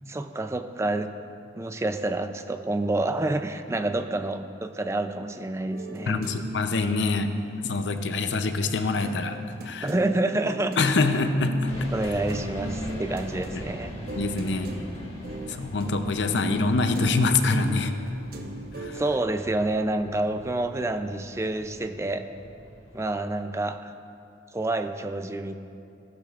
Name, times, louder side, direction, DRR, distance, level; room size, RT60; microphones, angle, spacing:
voice 1, 0.1-1.1 1.6-6.2 9.8-10.9 11.4-11.5 11.9-13.9 18.9-22.2 22.9-23.9 24.5-25.5, right 2 dB, 15° right, 8 dB, 0.4 m, -28 dB
sound 1, 5.7-8.5 8.8-18.9, equal, 55° right, 0.9 m, -37 dB
voice 2, 6.1-7.3 7.6-9.4 9.6-9.9 10.8-11.7 12.1-12.2 13.5-13.6 14.1-14.7 15.5-17.9 18.8-19.0, left 3 dB, 70° left, 8 dB, 0.6 m, -25 dB
sound 2, 11.7-23.1, equal, 35° left, 1.7 m, -42 dB
15.5 x 11.5 x 2.5 m, 2.5 s
head